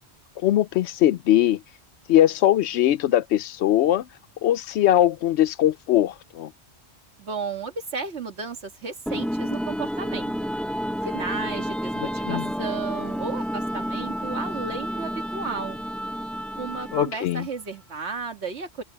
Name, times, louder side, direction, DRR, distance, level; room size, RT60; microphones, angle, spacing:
voice 1, 0.4-1.6 2.1-4.1 4.4-6.5 12.0-12.5 16.9-17.5, left 12 dB, 80° left, 0.9 m, -21 dB
voice 2, 7.2-10.3 11.1-15.8 16.6-18.8, right 5 dB, 90° right, 2.1 m, -33 dB
sound 1, 9.1-17.2, equal, ahead, 0.9 m, -30 dB
open air
omnidirectional pair, 1.1 m